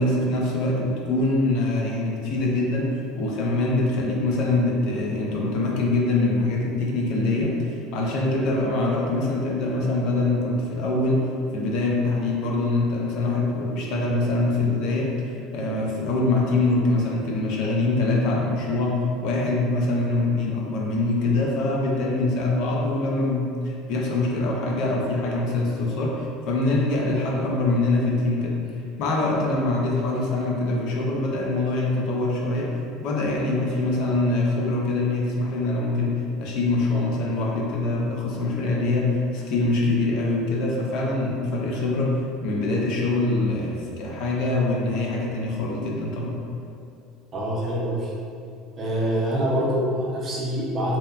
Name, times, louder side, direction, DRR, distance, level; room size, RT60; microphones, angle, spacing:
voice 1, 0.0-28.6 29.0-46.4, left 2 dB, 60° left, -2 dB, 0.4 m, -24 dB
voice 2, 47.3-48.1 48.8-51.0, equal, 30° right, -6 dB, 0.5 m, -25 dB
2.8 x 2.1 x 2.3 m, 2.4 s
cardioid pair, 150°, 0 cm